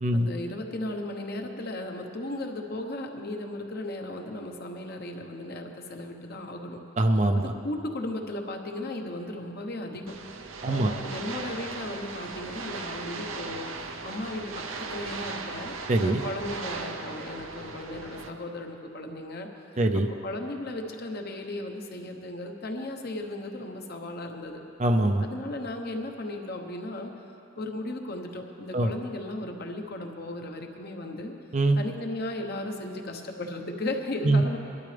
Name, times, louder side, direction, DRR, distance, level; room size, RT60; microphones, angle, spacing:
voice 1, 0.1-6.8 7.3-10.1 10.7-13.7 14.0-15.7 16.0-19.5 20.2-24.6 25.2-27.1 27.6-31.3 31.8-34.6, left 1 dB, 50° left, 3 dB, 1.1 m, -36 dB
voice 2, 7.0-7.5 10.6-10.9 15.9-16.2 19.8-20.1 24.8-25.2 28.7-28.9 31.5-31.8 34.2-34.4, right 1 dB, 35° right, 6 dB, 0.5 m, -23 dB
sound 1, 10.1-18.3, right 4 dB, 85° right, 0.8 m, -38 dB
20.5 x 12.0 x 3.4 m, 2.8 s
head